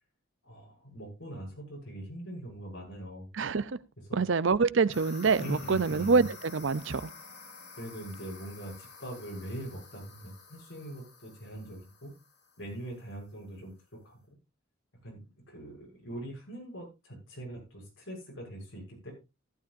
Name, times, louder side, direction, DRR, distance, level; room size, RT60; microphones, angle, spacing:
voice 1, 0.4-3.3 4.1-4.2 5.4-6.3 7.8-12.1 12.6-14.4 15.0-19.1, right 1 dB, 65° left, 6.7 m, -42 dB
voice 2, 3.3-3.8 4.1-7.1, right 4 dB, 60° right, 0.5 m, -26 dB
sound 1, 4.9-13.1, left 4 dB, 50° left, 4.5 m, -50 dB
15.0 x 12.0 x 2.6 m
head